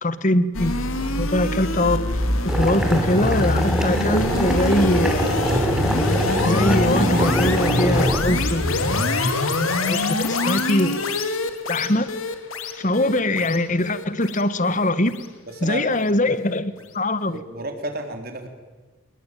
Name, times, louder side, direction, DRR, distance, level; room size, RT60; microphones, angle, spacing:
voice 1, 0.0-2.0 2.5-5.3 6.4-9.2 9.8-11.2 11.7-12.1 12.8-15.2 15.6-17.4, left 1 dB, 35° left, 14 dB, 1.3 m, -22 dB
sound 1, 0.5-15.7, left 2 dB, 75° left, 2.9 m, -24 dB
Boiling, 2.5-8.2, equal, 5° right, 3.3 m, -24 dB
voice 2, 15.5-16.0 17.3-18.5, right 2 dB, 45° right, 5 dB, 3.8 m, -32 dB
28.0 x 21.0 x 9.2 m, 1.3 s
head